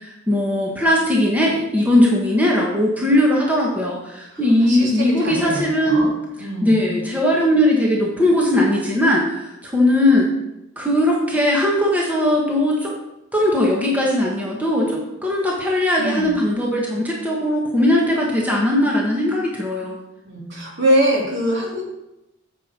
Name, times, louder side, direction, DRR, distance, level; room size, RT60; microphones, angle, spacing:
voice 1, 0.0-6.1 6.6-10.3 10.8-12.9 13.3-20.0, left 1 dB, 10° right, -3 dB, 1.4 m, -19 dB
voice 2, 4.3-6.1 6.4-6.7 16.0-16.3 20.2-21.8, equal, 60° right, -2 dB, 2.9 m, -23 dB
9.0 x 7.6 x 4.4 m, 0.91 s
head